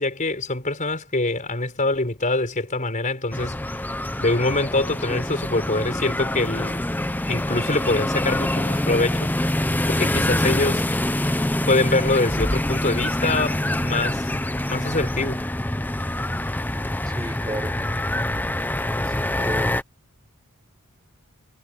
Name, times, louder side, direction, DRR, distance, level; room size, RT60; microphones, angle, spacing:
voice 1, 0.0-3.6 4.2-6.8 7.3-9.3 9.9-10.9 11.7-14.3 14.7-15.5, left 2 dB, 35° left, 4.8 m, -24 dB
sound 1, 3.3-19.8, left 1 dB, 10° left, 0.7 m, -25 dB
voice 2, 17.0-17.8 19.0-19.8, right 1 dB, 15° right, 6.1 m, -33 dB
head